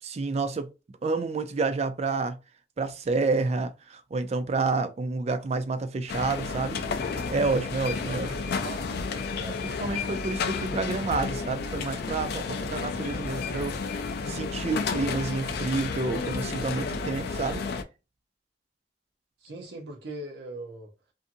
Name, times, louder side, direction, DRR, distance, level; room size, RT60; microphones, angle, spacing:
voice 1, 0.1-0.7 1.0-2.4 2.8-6.8 7.3-8.3 9.6-13.8 14.3-17.6, right 3 dB, 35° right, 0.4 m, -29 dB
sound 1, 6.1-17.8, left 4 dB, 60° left, 0.4 m, -31 dB
voice 2, 8.6-9.8 19.4-20.9, right 2 dB, 65° right, 0.7 m, -41 dB
2.6 x 2.5 x 2.5 m
head